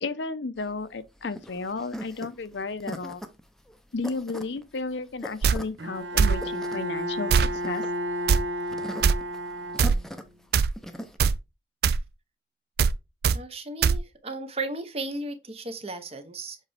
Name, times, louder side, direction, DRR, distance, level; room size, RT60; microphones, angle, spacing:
voice 1, 0.0-3.2 3.9-7.3 7.6-7.8, left 3 dB, 70° left, 0.7 m, -33 dB
sound 1, 0.6-11.2, equal, ahead, 0.6 m, -41 dB
sound 2, 5.4-5.6 6.2-6.4 7.3-7.5 8.3-8.4 9.0-9.1 9.8-10.0 10.5-10.7 11.2-11.4 11.8-12.0 12.8-13.0 13.2-13.4 13.8-14.0, right 6 dB, 55° right, 0.3 m, -20 dB
Bowed string instrument, 5.8-10.3, equal, 70° right, 0.8 m, -32 dB
voice 2, 13.3-16.6, right 2 dB, 30° right, 0.8 m, -35 dB
7.3 x 4.0 x 3.4 m
head